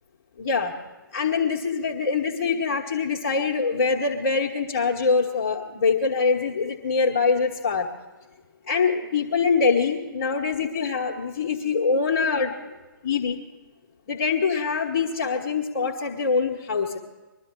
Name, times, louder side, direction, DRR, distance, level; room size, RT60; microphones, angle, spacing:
voice 1, 0.4-0.7 1.1-7.9 8.7-12.8 13.0-13.4 14.1-17.0, left 5 dB, 35° left, -4 dB, 1.4 m, -24 dB
21.5 x 12.5 x 4.7 m, 1.2 s
figure-of-eight pair, 130°, 11 cm